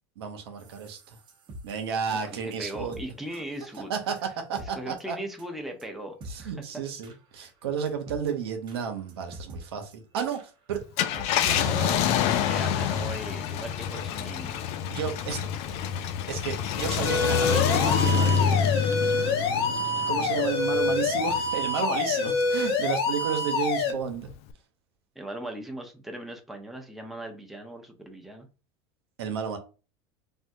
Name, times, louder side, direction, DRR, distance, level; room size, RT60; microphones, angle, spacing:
voice 1, 0.2-1.2 1.6-3.0 3.9-5.2 6.2-10.8 11.4-12.0 14.9-15.4 16.3-18.4 18.9-19.3 20.1-24.3 29.2-29.6, right 7 dB, 85° right, 0.7 m, -32 dB
sound 1, 0.6-3.0 3.3-3.4 3.7-3.8 4.2-4.3 4.6-4.7 5.0-5.1 5.4-5.5 5.8-5.9 6.2-6.7 7.0-7.2 7.4-7.5 7.9-8.3 8.7-8.8 9.1-9.6 9.9-10.0 10.3-10.5 10.7-10.8 11.1-11.3 11.5-11.6 12.0-12.1 12.4-12.5 12.8-12.9, equal, 35° right, 0.8 m, -44 dB
voice 2, 2.1-3.9 4.7-6.5 12.5-14.6 25.2-28.5, right 1 dB, ahead, 0.7 m, -38 dB
Car, 10.8-21.7 22.1-22.2 24.3-24.5, left 8 dB, 55° left, 0.4 m, -27 dB
sound 2, 17.0-23.9, left 3 dB, 85° left, 0.8 m, -26 dB
3.5 x 2.2 x 2.6 m
hypercardioid pair, 100°, 13 cm